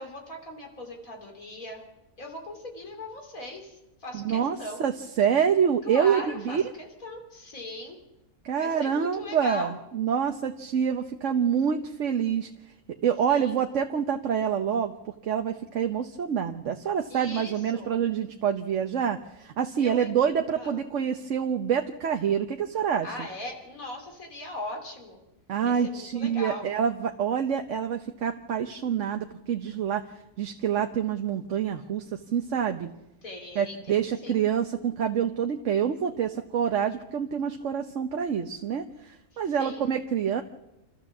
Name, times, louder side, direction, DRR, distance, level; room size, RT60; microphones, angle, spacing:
voice 1, 0.0-1.8 2.2-4.8 5.8-8.0 8.6-9.8 13.3-13.7 17.1-17.9 19.8-20.2 20.5-20.8 23.0-25.2 25.6-26.7 33.2-34.4 39.3-40.0, left 1 dB, 85° left, 1 dB, 3.7 m, -39 dB
voice 2, 4.1-6.6 8.4-12.5 13.0-23.1 25.5-30.0 30.4-32.9 33.6-40.4, right 8 dB, 65° right, 5 dB, 1.2 m, -27 dB
26.5 x 15.0 x 7.2 m, 0.93 s
omnidirectional pair, 1.4 m